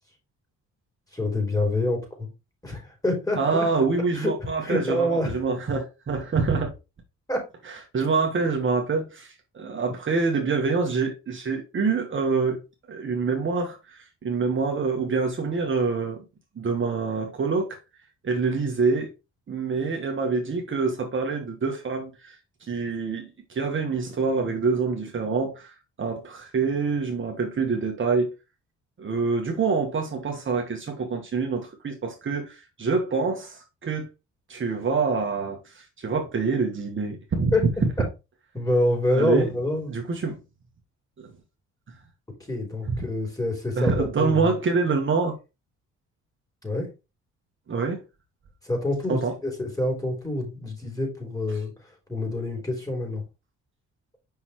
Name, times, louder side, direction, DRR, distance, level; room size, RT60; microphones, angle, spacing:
voice 1, 1.1-2.3 2.6-3.7 4.1-5.4 7.3-7.4 37.5-37.6 38.5-39.9 42.5-44.6 46.6-46.9 48.6-53.2, left 1 dB, 10° left, 3.4 m, -27 dB
voice 2, 3.4-6.7 7.9-12.6 12.9-16.2 16.6-17.8 18.2-19.1 19.5-22.3 22.7-28.3 29.0-34.1 34.5-37.5 39.1-39.5 39.9-40.4 41.2-41.3 42.9-43.0 43.8-45.4 47.7-48.0 49.1-49.3, right 4 dB, 40° right, 1.4 m, -26 dB
5.8 x 5.5 x 3.1 m
cardioid pair, 90°, 30 cm